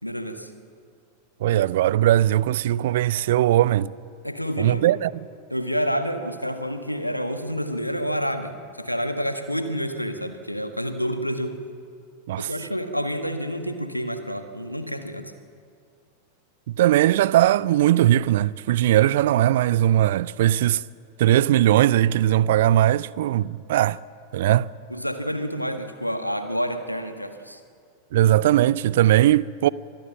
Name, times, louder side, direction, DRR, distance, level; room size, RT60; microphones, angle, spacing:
voice 1, 0.0-0.5 4.2-4.9 5.5-11.6 12.4-15.3 24.9-27.6, equal, 90° left, 1.6 m, -28 dB
voice 2, 1.4-3.9 4.6-5.1 12.3-12.5 16.7-20.8 21.2-24.0 24.3-24.7 28.1-29.7, right 13 dB, 55° right, 0.5 m, -19 dB
25.0 x 19.5 x 7.3 m
figure-of-eight pair, 90°, 0 cm